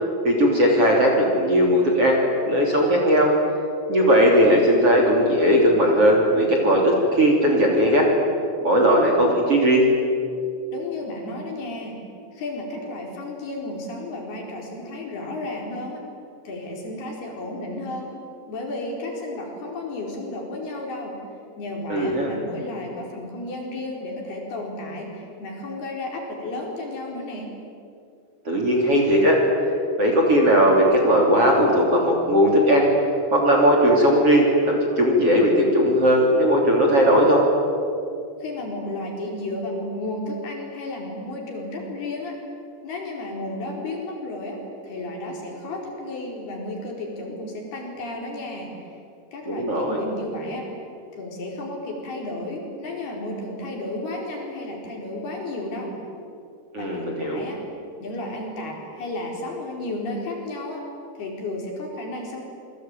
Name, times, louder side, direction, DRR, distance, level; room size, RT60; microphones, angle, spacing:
voice 1, 0.2-3.3 3.9-8.1 8.6-9.9 21.9-22.3 28.5-29.4 30.0-32.9 33.3-37.4 49.5-50.0 56.7-57.4, equal, 35° right, 0 dB, 3.9 m, -18 dB
voice 2, 10.7-12.0 12.3-16.0 16.4-18.1 18.5-21.2 21.6-27.5 38.4-42.4 42.8-44.6 44.8-48.9 49.3-50.7 51.1-55.9 56.8-57.6 58.0-60.8 61.1-62.4, left 2 dB, 55° left, 0 dB, 6.3 m, -33 dB
27.5 x 23.0 x 9.1 m, 2.5 s
omnidirectional pair, 5.5 m